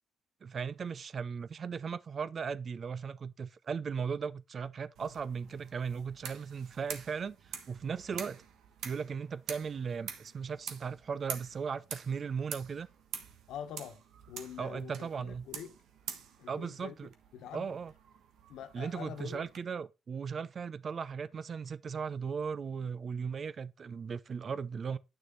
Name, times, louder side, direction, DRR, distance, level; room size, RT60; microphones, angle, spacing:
voice 1, 0.4-8.4 8.8-12.9 14.6-15.5 16.5-17.1 17.5-17.9 18.7-25.0, right 6 dB, 45° right, 0.6 m, -37 dB
sound 1, 4.9-19.6, right 7 dB, 80° right, 1.3 m, -47 dB
voice 2, 13.5-14.0 14.3-15.8 16.4-17.0 17.3-17.7 18.5-19.4, left 9 dB, 85° left, 1.4 m, -45 dB
9.5 x 6.4 x 4.1 m
cardioid pair, 90°, 0 cm